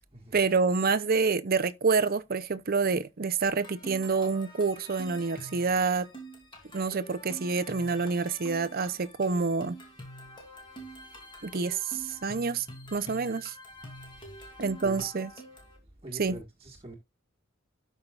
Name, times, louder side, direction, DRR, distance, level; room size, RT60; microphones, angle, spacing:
voice 1, 0.3-6.1 6.7-9.8 11.4-12.7 12.9-13.5 14.6-15.3 16.2-16.4, right 4 dB, 45° right, 0.6 m, -27 dB
sound 1, 3.5-15.8, right 1 dB, 25° left, 2.8 m, -46 dB
voice 2, 16.0-17.0, right 2 dB, 25° right, 1.6 m, -43 dB
12.5 x 5.5 x 2.4 m
head